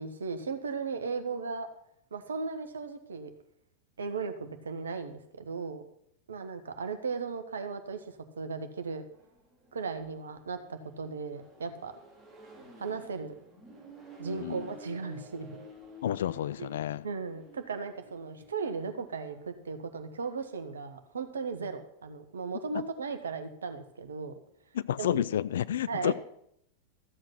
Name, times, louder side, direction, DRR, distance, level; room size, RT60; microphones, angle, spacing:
voice 1, 0.0-1.7 2.1-3.3 4.0-5.8 6.3-9.0 9.7-11.9 12.8-13.3 14.2-15.6 16.6-16.7 17.0-24.3 25.0-25.2 25.9-26.1, right 4 dB, 70° right, 1.3 m, -36 dB
Accelerating revving vroom, 9.0-19.5, right 1 dB, 5° right, 4.9 m, -51 dB
voice 2, 14.4-14.7 16.0-17.1 22.7-22.8 24.7-26.1, left 10 dB, 60° left, 0.5 m, -30 dB
13.5 x 7.9 x 5.9 m
figure-of-eight pair, 90°, 0 cm